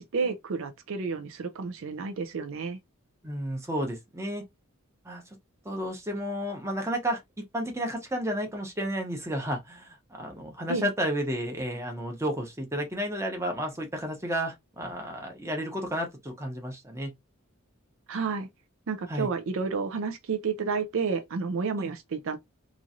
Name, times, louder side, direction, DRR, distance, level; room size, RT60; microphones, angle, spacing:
voice 1, 0.0-2.8 10.7-10.9 18.1-18.5 18.9-22.4, right 5 dB, 65° right, 0.4 m, -31 dB
voice 2, 3.2-4.4 5.0-5.2 5.6-7.2 7.5-17.1 19.1-19.3 21.8-21.9, equal, 15° right, 0.8 m, -32 dB
3.0 x 2.5 x 2.6 m
head